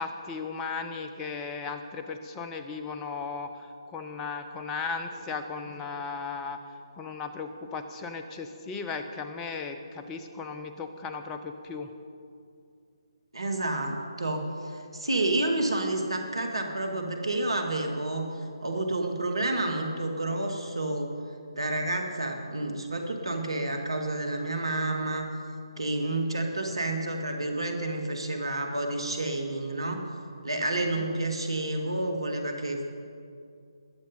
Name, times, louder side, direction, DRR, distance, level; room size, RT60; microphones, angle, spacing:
voice 1, 0.0-11.9 30.9-31.0, left 4 dB, 15° left, 7 dB, 0.8 m, -36 dB
voice 2, 13.3-18.3 18.6-21.1 21.5-25.3 25.8-30.0 30.4-32.8, right 2 dB, 70° right, 4 dB, 2.0 m, -29 dB
21.0 x 7.5 x 5.4 m, 2.4 s
figure-of-eight pair, 145°, 3 cm